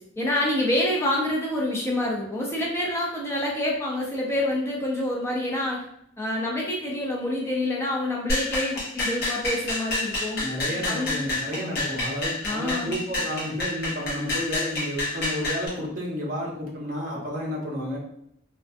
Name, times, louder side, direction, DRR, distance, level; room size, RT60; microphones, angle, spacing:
voice 1, 0.2-5.9 6.2-10.4 10.9-11.2 12.4-12.9, left 1 dB, 15° left, -3 dB, 0.4 m, -27 dB
sound 1, 8.3-15.7, left 2 dB, 50° left, 0.8 m, -29 dB
voice 2, 10.4-18.0, equal, 40° right, -4 dB, 0.7 m, -31 dB
2.3 x 2.3 x 2.4 m, 0.74 s
head